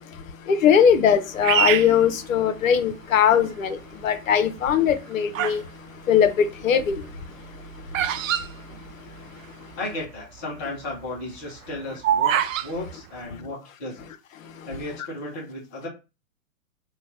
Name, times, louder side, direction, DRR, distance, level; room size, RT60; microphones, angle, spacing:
voice 1, 0.5-3.8 4.0-5.6 6.1-7.0, left 8 dB, 65° left, 0.7 m, -20 dB
Bird vocalization bird call bird song, 1.4-2.9 3.6-4.0 4.8-5.7 6.0-9.5 9.7-9.8 10.0-10.4 10.8-12.7, right 10 dB, 65° right, 0.5 m, -25 dB
voice 2, 9.8-12.3 12.6-14.1 14.7-15.9, left 2 dB, 15° left, 0.3 m, -34 dB
2.8 x 2.1 x 4.1 m
hypercardioid pair, 125°, 44 cm